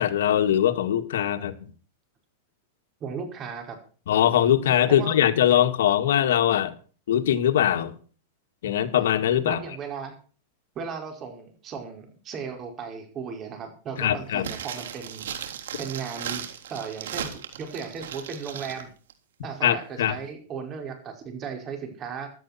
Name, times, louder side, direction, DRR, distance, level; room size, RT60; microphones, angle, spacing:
voice 1, 0.0-1.7 4.1-6.7 7.1-7.9 8.6-9.6 14.0-14.5 19.6-20.2, left 10 dB, 80° left, 2.1 m, -22 dB
voice 2, 3.0-3.8 4.9-5.2 9.4-10.1 10.7-15.5 15.8-18.9 19.4-22.3, right 6 dB, 25° right, 5.2 m, -36 dB
sound 1, 14.4-18.8 19.1-19.2, right 9 dB, 90° right, 3.4 m, -36 dB
16.0 x 13.0 x 4.4 m
supercardioid pair, 150°, 0 cm